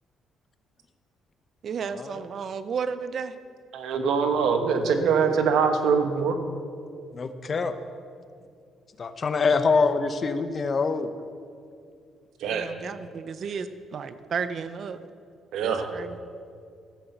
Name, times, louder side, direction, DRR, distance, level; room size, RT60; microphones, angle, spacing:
voice 1, 1.6-3.3 12.5-15.0 15.6-16.2, right 6 dB, 55° right, 12 dB, 0.6 m, -33 dB
voice 2, 3.7-6.4 12.4-12.7 15.5-15.9, right 6 dB, 80° right, 6 dB, 1.2 m, -23 dB
voice 3, 7.1-7.7 9.0-11.1, left 4 dB, 45° left, 9 dB, 0.8 m, -24 dB
13.5 x 7.0 x 7.9 m, 2.3 s
cardioid pair, 90°, 0 cm